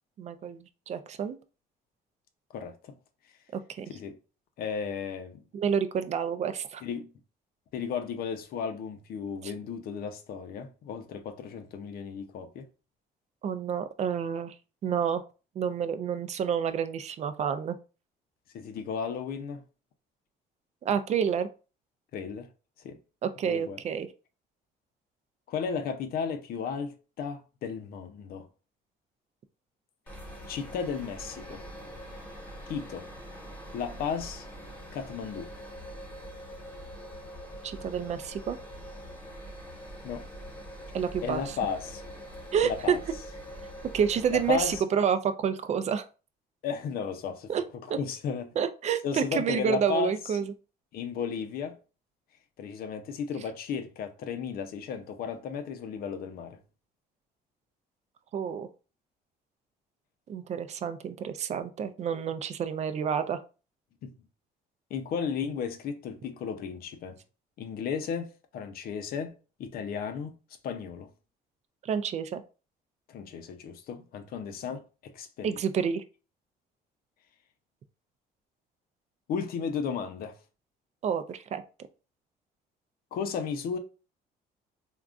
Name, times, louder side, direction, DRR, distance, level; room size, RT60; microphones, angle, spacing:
voice 1, 0.2-1.4 3.5-3.9 5.5-6.8 13.4-14.5 14.8-15.2 15.6-17.8 20.8-21.5 23.2-24.1 37.6-38.6 40.9-41.4 42.5-43.0 43.9-46.0 47.5-47.6 47.9-48.0 48.6-50.5 58.3-58.7 60.3-63.4 71.8-72.4 75.4-76.0 81.0-81.6, right 7 dB, 40° right, 0.4 m, -29 dB
voice 2, 2.5-2.9 3.9-4.2 4.6-5.4 6.8-7.1 7.7-12.7 18.5-19.6 22.1-22.5 22.8-23.0 23.5-23.8 25.5-28.5 30.5-31.6 32.7-33.1 33.7-34.5 34.9-35.5 40.0-40.2 41.2-42.0 42.6-43.0 44.3-44.8 46.6-47.5 48.0-48.5 49.0-50.4 50.9-51.8 52.6-56.6 64.0-64.1 64.9-67.2 67.6-69.3 69.6-70.3 70.6-71.1 73.1-75.6 79.3-80.3 83.1-83.8, left 6 dB, 65° left, 0.6 m, -34 dB
sound 1, 30.1-44.8, equal, 10° left, 1.1 m, -43 dB
3.6 x 2.3 x 2.4 m
cardioid pair, 110°, 17 cm